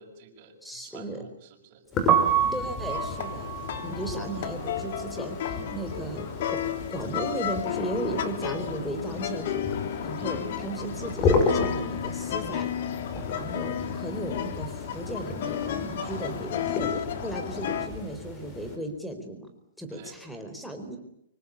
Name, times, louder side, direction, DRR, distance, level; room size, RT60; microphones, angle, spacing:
voice 1, 0.0-1.8 10.1-10.4 15.9-16.4 19.9-20.2, right 7 dB, 40° right, -1 dB, 6.5 m, -49 dB
voice 2, 0.6-1.2 2.5-3.5 3.8-5.4 5.7-6.6 6.9-9.8 10.0-12.7 13.3-19.5 19.8-21.0, right 1 dB, ahead, 8 dB, 4.3 m, -36 dB
sound 1, 1.9-18.8, left 3 dB, 20° left, 6.7 m, -34 dB
Piano, 1.9-7.9 8.1-9.7 10.0-16.4, right 8 dB, 15° right, 3.9 m, -31 dB
sound 2, 2.9-17.9, left 9 dB, 55° left, 3.3 m, -33 dB
26.0 x 23.5 x 8.7 m, 0.79 s
hypercardioid pair, 155°, 0 cm